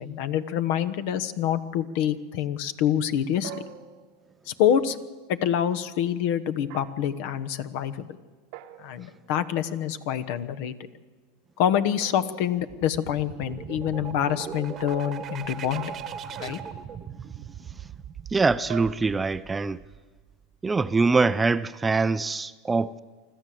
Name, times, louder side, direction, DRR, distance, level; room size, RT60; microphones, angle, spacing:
voice 1, 0.0-3.5 4.5-5.0 5.3-8.2 8.8-10.7 11.6-15.9 16.4-16.6, left 9 dB, 65° left, 1.2 m, -26 dB
sound 1, 3.4-4.5 6.7-7.2 8.5-9.4 12.0-13.1 15.8-16.7 18.7-19.0, right 13 dB, 60° right, 1.0 m, -44 dB
sound 2, 12.6-20.2, right 8 dB, 35° right, 1.1 m, -39 dB
voice 2, 18.3-19.8 20.6-23.0, right 4 dB, 15° right, 0.5 m, -23 dB
25.0 x 13.5 x 7.7 m
supercardioid pair, 115°, 0 cm